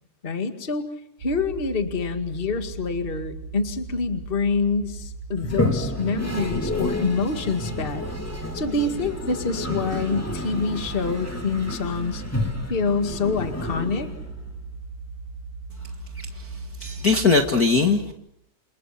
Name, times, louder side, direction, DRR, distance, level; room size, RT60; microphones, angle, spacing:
voice 1, 0.2-0.9 1.2-8.0 8.5-12.2 12.7-14.1, left 4 dB, 35° left, 7 dB, 0.9 m, -26 dB
sound 1, 1.2-17.5, right 4 dB, 60° right, 1.6 m, -38 dB
Toilet flush, 5.4-14.5, left 1 dB, 5° left, 1.5 m, -30 dB
voice 2, 16.8-18.1, left 4 dB, 65° left, 3 dB, 0.8 m, -20 dB
29.0 x 27.5 x 5.9 m, 0.72 s
omnidirectional pair, 4.6 m